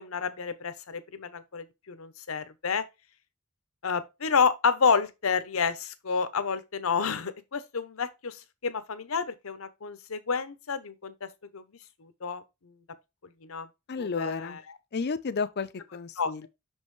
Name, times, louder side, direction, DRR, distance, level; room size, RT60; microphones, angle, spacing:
voice 1, 0.0-2.8 3.8-11.6 12.0-12.8 13.4-13.7 14.0-14.6 16.2-16.3, left 5 dB, 80° left, 0.8 m, -30 dB
voice 2, 13.9-14.6 14.9-16.5, left 4 dB, 50° left, 0.5 m, -32 dB
6.1 x 5.4 x 3.2 m
head